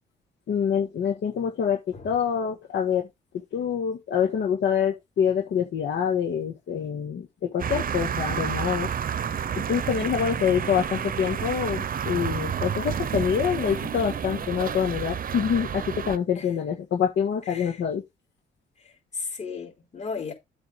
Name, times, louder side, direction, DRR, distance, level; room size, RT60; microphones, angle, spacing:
voice 1, 0.5-1.8 2.0-3.1 3.5-8.9 9.7-18.0, left 8 dB, 65° left, 1.6 m, -26 dB
sound 1, 7.6-16.2, right 8 dB, 45° right, 0.8 m, -30 dB
voice 2, 17.4-17.8 18.8-20.3, left 5 dB, 35° left, 3.7 m, -36 dB
7.9 x 3.7 x 6.6 m
cardioid pair, 90°, 20 cm